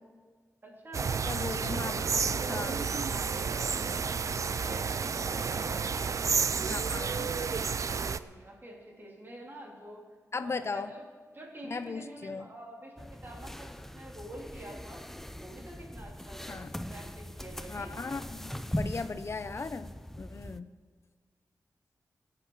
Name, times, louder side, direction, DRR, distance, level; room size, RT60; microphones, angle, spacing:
voice 1, 0.6-1.2 2.8-6.5 7.8-10.0 10.4-11.0 11.3-15.0 15.4-18.0, right 1 dB, 35° right, -2 dB, 3.3 m, -47 dB
sound 1, 0.9-8.2, right 5 dB, 55° right, 0.4 m, -31 dB
voice 2, 1.3-2.8 6.7-7.3 10.3-10.9 11.6-12.5 16.5-16.7 17.7-20.7, left 4 dB, 45° left, 12 dB, 0.6 m, -38 dB
sound 2, 13.0-20.6, equal, 5° left, 0.5 m, -40 dB
22.5 x 7.9 x 4.7 m, 1.5 s
wide cardioid pair, 110°, 6 cm